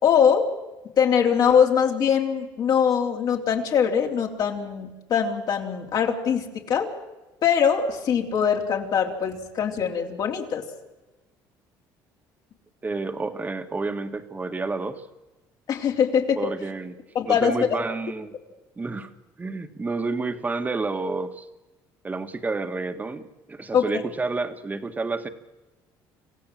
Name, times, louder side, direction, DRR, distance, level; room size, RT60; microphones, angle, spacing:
voice 1, 0.0-0.5 1.0-6.9 7.4-10.6 15.7-16.4 17.2-17.5 23.7-23.9, left 7 dB, 55° left, 2 dB, 3.4 m, -22 dB
voice 2, 12.8-15.0 16.4-17.0 17.2-18.3 18.8-19.1 19.4-21.5 22.0-23.2 23.5-25.3, right 3 dB, 20° right, 8 dB, 1.9 m, -29 dB
27.0 x 15.5 x 7.7 m, 1.1 s
cardioid pair, 110°, 8 cm